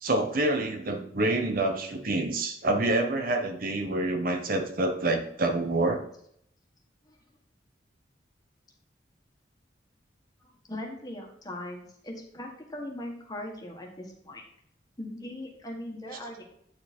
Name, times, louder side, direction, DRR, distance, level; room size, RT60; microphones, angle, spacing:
voice 1, 0.0-6.1, right 2 dB, 50° right, 5 dB, 0.9 m, -27 dB
voice 2, 10.4-14.4 15.0-16.4, left 1 dB, 20° left, 0 dB, 1.6 m, -40 dB
8.6 x 4.9 x 4.3 m, 0.69 s
head